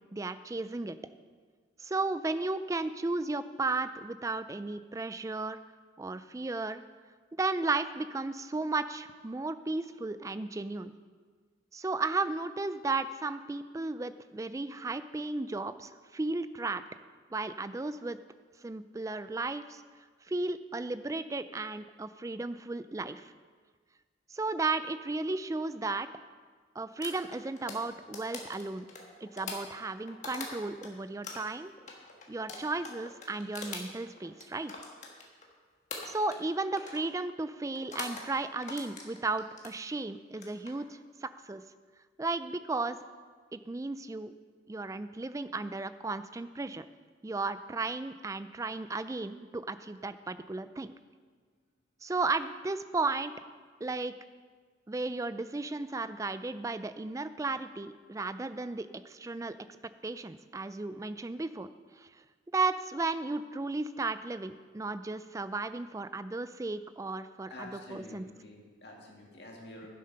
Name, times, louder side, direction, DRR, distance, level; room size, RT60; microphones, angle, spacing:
voice 1, 0.1-1.0 1.8-5.6 6.0-6.8 7.4-10.9 11.7-16.8 17.3-18.2 18.6-19.8 20.3-23.3 24.3-26.1 26.8-28.9 29.2-31.7 32.3-34.7 36.1-41.6 42.2-43.0 43.5-44.4 44.7-46.8 47.2-50.9 52.0-53.3 53.8-54.1 54.9-59.6 60.0-61.7 62.0-62.1 62.5-68.2, right 3 dB, 15° right, 13 dB, 0.3 m, -34 dB
sound 1, 27.0-30.9 31.2-35.5 35.9-36.5 36.8-37.1 37.7-38.3 38.6-39.7 40.3-40.7, left 3 dB, 40° left, 1.5 m, -43 dB
voice 2, 67.5-69.9, left 1 dB, 60° left, -1 dB, 2.2 m, -48 dB
11.5 x 7.6 x 5.5 m, 1.5 s
head